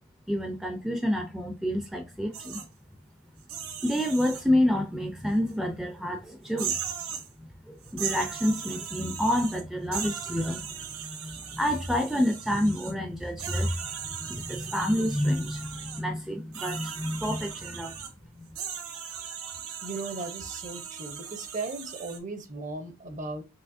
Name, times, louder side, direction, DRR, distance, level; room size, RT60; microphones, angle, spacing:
voice 1, 0.3-2.6 3.8-6.8 7.4-17.9 18.4-18.5, left 1 dB, ahead, 0.5 m, -29 dB
sound 1, 2.3-2.7 3.4-4.4 5.5-5.6 6.5-7.3 7.8-9.6 9.9-12.9 13.4-16.0 16.5-18.1 18.6-22.2, right 7 dB, 75° right, 1.1 m, -38 dB
voice 2, 19.8-23.4, right 3 dB, 35° right, 0.7 m, -37 dB
5.7 x 3.0 x 2.6 m
head